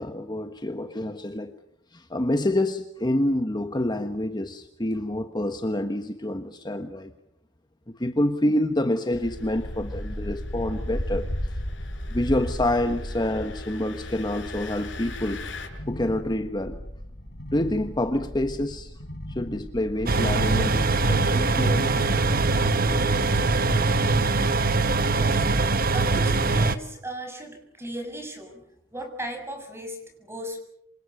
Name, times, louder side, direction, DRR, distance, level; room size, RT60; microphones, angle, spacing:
voice 1, 0.0-1.5 1.9-7.1 7.9-11.3 12.1-15.4 15.9-16.8 17.5-18.9 19.3-22.0, left 1 dB, 25° left, 1.3 m, -27 dB
Engine, 9.1-15.7, left 1 dB, 75° left, 5.7 m, -33 dB
sound 1, 14.8-20.1, equal, 60° left, 4.2 m, -39 dB
sound 2, 20.1-26.8, right 3 dB, 50° right, 1.2 m, -22 dB
voice 2, 25.1-25.5 25.7-28.6 28.9-30.6, right 1 dB, 15° right, 6.7 m, -37 dB
27.5 x 26.5 x 6.8 m
head